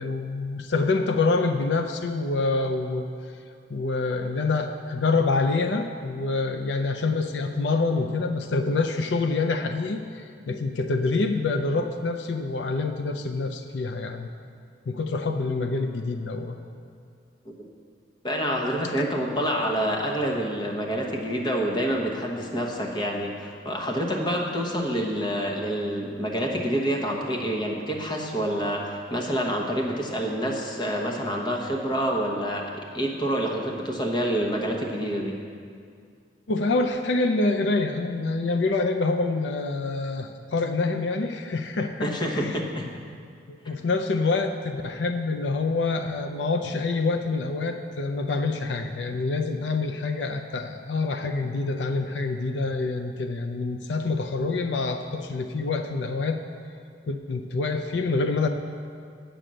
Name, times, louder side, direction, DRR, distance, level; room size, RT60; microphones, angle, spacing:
voice 1, 0.0-3.1 3.7-14.3 14.9-16.6 36.5-42.6 43.5-56.4 57.1-58.5, left 3 dB, 80° left, 6 dB, 0.5 m, -26 dB
voice 2, 18.2-35.4 42.0-42.9, equal, 25° left, 0 dB, 1.1 m, -27 dB
8.9 x 6.8 x 7.5 m, 2.2 s
head